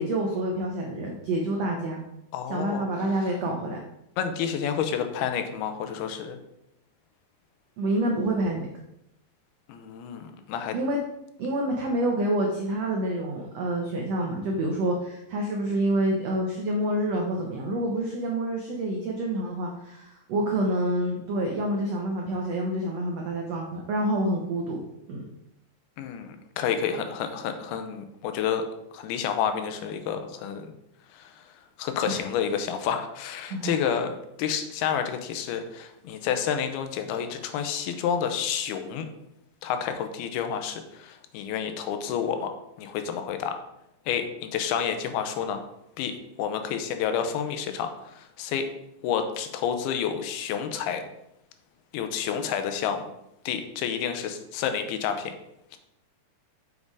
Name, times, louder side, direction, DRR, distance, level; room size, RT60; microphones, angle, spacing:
voice 1, 0.0-2.0 2.5-3.8 7.8-8.7 10.7-11.0 11.4-24.8 25.1-25.2 32.1-32.2 33.5-33.7, right 1 dB, 85° right, 0 dB, 1.4 m, -27 dB
voice 2, 2.3-2.9 4.2-6.4 9.7-10.8 26.0-28.7 28.9-30.7 31.1-31.4 31.8-39.1 39.6-42.5 42.8-43.6 44.1-45.6 46.0-48.7 49.0-51.0 51.9-53.0 53.5-55.3 55.7-55.8, left 8 dB, 85° left, 7 dB, 2.7 m, -29 dB
7.7 x 5.4 x 4.7 m, 0.83 s
omnidirectional pair, 4.4 m